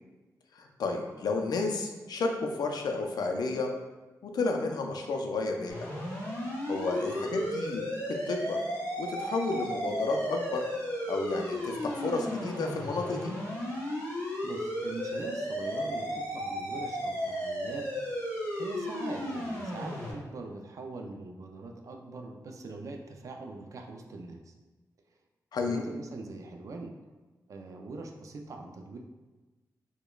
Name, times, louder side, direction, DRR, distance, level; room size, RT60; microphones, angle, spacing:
voice 1, 0.5-3.7 4.2-5.9 6.7-7.8 8.1-8.6 9.0-10.7 11.1-13.4 25.5-25.8, left 3 dB, 80° left, 3 dB, 0.4 m, -31 dB
sound 1, 5.7-20.1, equal, 25° left, 1.2 m, -34 dB
voice 2, 14.4-17.8 18.6-24.5 25.6-26.9 27.5-29.0, right 3 dB, 55° right, 3 dB, 0.3 m, -42 dB
4.9 x 2.1 x 2.3 m, 1.2 s
wide cardioid pair, 145°, 7 cm